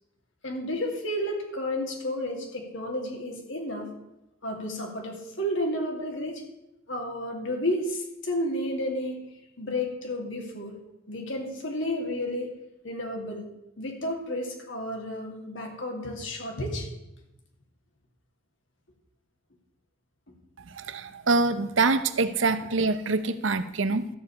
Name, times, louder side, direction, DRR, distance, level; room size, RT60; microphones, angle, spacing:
voice 1, 0.4-3.9 4.4-6.4 6.9-9.2 9.6-10.8 11.1-12.5 12.8-13.5 13.8-16.9, left 1 dB, 65° left, 1 dB, 2.6 m, -31 dB
voice 2, 20.7-24.1, right 3 dB, 65° right, 12 dB, 0.8 m, -25 dB
12.5 x 5.4 x 8.4 m, 0.92 s
head